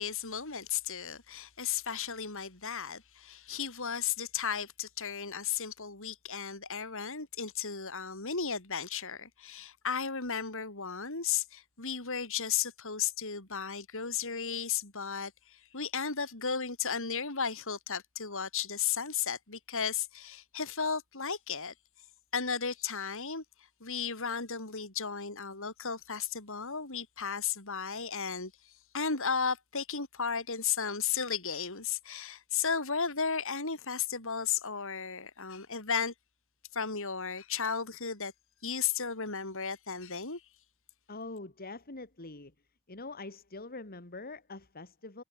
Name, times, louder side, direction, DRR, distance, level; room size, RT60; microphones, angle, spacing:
voice 1, 0.0-21.7 22.3-23.4 23.8-28.5 28.9-36.1 36.7-38.3 38.6-40.4, left 6 dB, 65° left, 4.9 m, -34 dB
voice 2, 41.1-42.5 42.9-45.2, left 3 dB, 45° left, 2.6 m, -44 dB
head